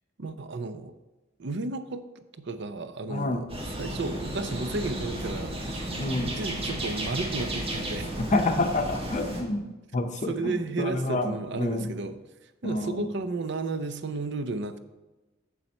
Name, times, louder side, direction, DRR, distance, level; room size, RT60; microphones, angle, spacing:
voice 1, 0.2-0.9 1.4-2.0 2.4-5.9 6.2-8.1 8.6-8.7 10.3-12.2 12.6-14.8, right 3 dB, 65° right, 10 dB, 0.6 m, -33 dB
voice 2, 3.1-3.4 6.0-6.3 8.2-9.6 9.9-11.9 12.6-13.1, left 2 dB, 40° left, 7 dB, 0.6 m, -28 dB
sound 1, 3.5-9.4, right 1 dB, 30° right, 1.6 m, -33 dB
7.1 x 7.1 x 4.3 m, 1.1 s
head